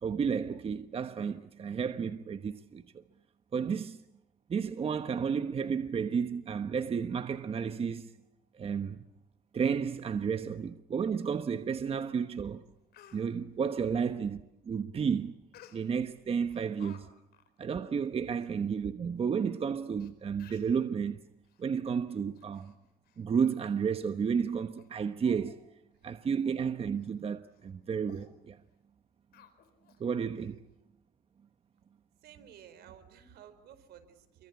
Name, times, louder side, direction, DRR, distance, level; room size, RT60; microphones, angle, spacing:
voice 1, 0.0-3.0 3.5-4.0 4.5-8.1 8.5-9.0 9.5-12.6 13.1-15.3 15.7-17.1 17.6-21.2 21.6-22.7 23.2-25.6 26.0-28.6 30.0-30.6, right 6 dB, 35° right, 1.1 m, -32 dB
Speech, 12.2-12.3 12.7-13.2 15.5-16.1 16.5-17.0 17.3-17.5 18.0-18.1 18.3-18.5 19.3-19.4 20.0-20.1 20.4-20.8 21.4-21.6 22.1-22.7 23.0-23.2 23.7-23.8 24.3-24.4 24.8-24.9 25.2-25.6 25.9-26.1 26.4-26.6 27.0-27.1 27.5-27.7 28.1-28.3 29.3-30.0 30.4-30.5, left 9 dB, 70° left, 4.5 m, -57 dB
voice 2, 32.2-34.5, right 9 dB, 75° right, 4.5 m, -54 dB
29.5 x 24.0 x 8.4 m
cardioid pair, 110°, 17 cm